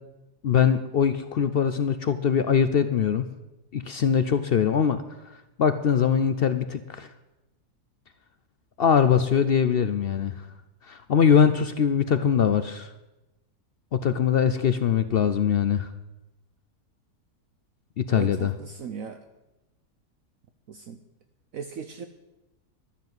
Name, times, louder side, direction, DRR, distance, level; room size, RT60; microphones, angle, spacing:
voice 1, 0.4-3.3 3.7-5.0 5.3-7.1 8.8-10.3 10.8-12.9 13.9-15.9 18.0-18.5, left 7 dB, 70° left, 11 dB, 0.5 m, -22 dB
voice 2, 18.1-19.2 20.7-21.0 21.5-22.1, right 6 dB, 65° right, 8 dB, 1.1 m, -37 dB
12.0 x 7.2 x 9.3 m, 0.99 s
omnidirectional pair, 1.7 m